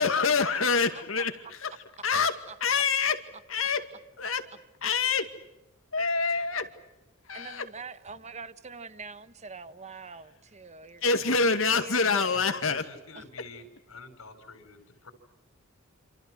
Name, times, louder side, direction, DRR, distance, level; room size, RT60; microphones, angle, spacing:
voice 1, 0.0-1.7 2.0-3.2 3.5-3.8 4.2-4.4 4.8-5.3 5.9-6.7 7.3-7.6 11.0-12.9, left 5 dB, 70° left, 2.2 m, -26 dB
voice 2, 2.2-2.5 7.3-12.5 13.1-13.2, right 4 dB, 35° right, 1.2 m, -44 dB
voice 3, 12.3-15.1, left 3 dB, 85° left, 5.1 m, -48 dB
28.0 x 27.5 x 6.3 m
head